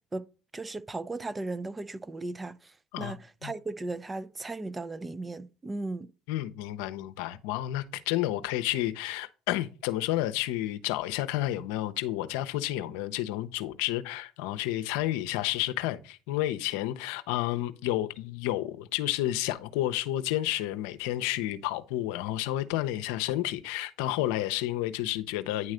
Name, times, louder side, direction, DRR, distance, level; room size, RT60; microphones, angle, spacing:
voice 1, 0.5-6.1, right 2 dB, 20° right, 0.5 m, -36 dB
voice 2, 6.3-25.7, left 14 dB, 85° left, 0.6 m, -31 dB
9.5 x 3.2 x 5.0 m
supercardioid pair, 90°, 0 cm